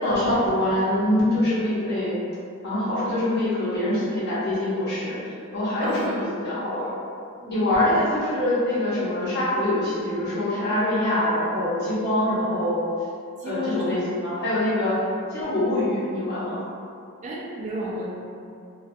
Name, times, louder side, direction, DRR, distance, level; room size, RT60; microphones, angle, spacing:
voice 1, 0.0-2.1 2.6-5.1 5.5-6.9 7.5-12.8 13.4-15.0 15.3-16.6, left 1 dB, 50° left, -10 dB, 0.8 m, -24 dB
voice 2, 5.8-6.4 7.4-7.6 13.4-14.2 17.2-18.0, left 1 dB, 35° right, -4 dB, 0.4 m, -32 dB
2.3 x 2.2 x 2.5 m, 2.4 s
head